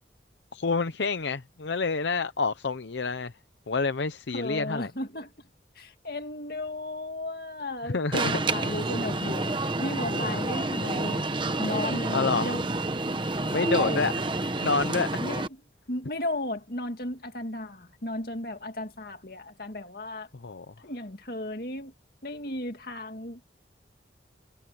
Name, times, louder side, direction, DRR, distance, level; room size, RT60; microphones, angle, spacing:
voice 1, 0.5-3.3 3.7-4.9 7.9-8.4 10.1-10.3 12.1-12.6 13.5-14.2 14.6-15.2 20.3-20.7, left 4 dB, 75° left, 0.7 m, -28 dB
voice 2, 4.3-5.3 5.8-11.3 11.6-12.6 13.5-14.1 15.2-15.6 15.9-20.3 20.8-21.9 22.2-23.4, left 1 dB, 55° left, 2.4 m, -35 dB
Alarm, 8.1-15.5, right 2 dB, 25° right, 1.1 m, -29 dB
head